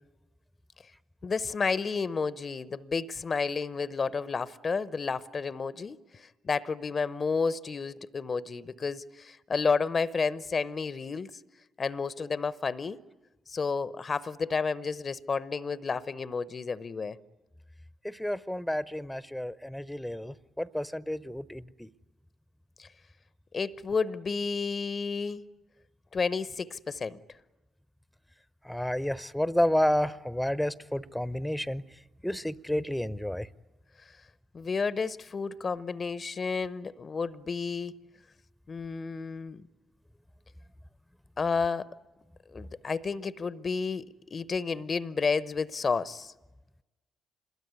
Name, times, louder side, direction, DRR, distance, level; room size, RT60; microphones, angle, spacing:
voice 1, 1.2-11.3 11.8-13.0 13.5-17.2 22.8-22.9 23.5-25.4 26.1-27.2 34.5-38.0 38.7-39.6 41.4-41.9 42.5-44.0 44.3-46.3, left 5 dB, 40° left, 0.8 m, -31 dB
voice 2, 18.0-21.9 28.6-31.8 32.2-33.5, left 1 dB, 5° left, 0.8 m, -30 dB
27.0 x 21.5 x 9.6 m
figure-of-eight pair, 40°, 0 cm